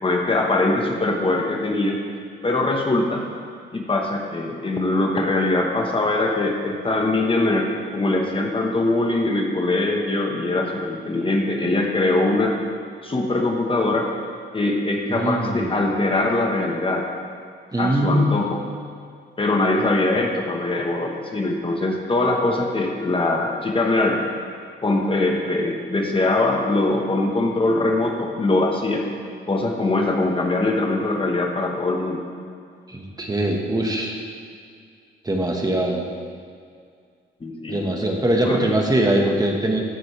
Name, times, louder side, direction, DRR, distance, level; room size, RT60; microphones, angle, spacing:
voice 1, 0.0-2.0 2.4-3.2 3.7-12.6 13.0-14.1 14.5-17.0 17.8-18.6 19.4-24.2 24.8-29.0 29.5-32.2 37.4-37.9 38.4-38.7, left 2 dB, 25° left, 1 dB, 1.5 m, -22 dB
voice 2, 15.1-15.8 17.7-18.4 32.9-34.2 35.2-36.0 37.7-39.8, right 1 dB, 20° right, 1 dB, 1.6 m, -22 dB
14.5 x 10.5 x 3.5 m, 2.2 s
cardioid pair, 90°, 20 cm